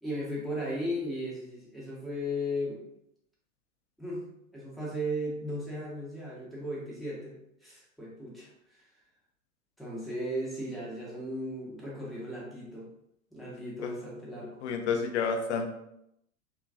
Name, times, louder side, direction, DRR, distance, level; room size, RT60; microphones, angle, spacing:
voice 1, 0.0-2.8 4.0-4.2 4.5-8.9 9.8-12.9 13.3-14.6, equal, ahead, -6 dB, 0.8 m, -36 dB
voice 2, 14.6-15.7, left 5 dB, 55° left, 4 dB, 0.6 m, -29 dB
3.0 x 2.3 x 2.4 m, 0.78 s
figure-of-eight pair, 100°, 43 cm